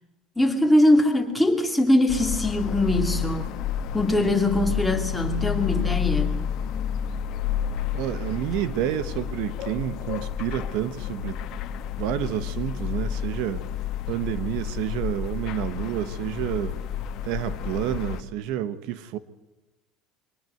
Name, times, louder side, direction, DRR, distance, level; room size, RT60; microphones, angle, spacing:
voice 1, 0.4-3.5 3.9-6.4, left 1 dB, 5° left, 2.8 m, -22 dB
sound 1, 2.1-18.2, left 9 dB, 50° left, 1.5 m, -30 dB
voice 2, 7.9-11.4 12.0-13.6 14.1-16.8 17.2-19.2, right 11 dB, 65° right, 1.3 m, -29 dB
24.0 x 19.0 x 7.8 m
cardioid pair, 155°, 0 cm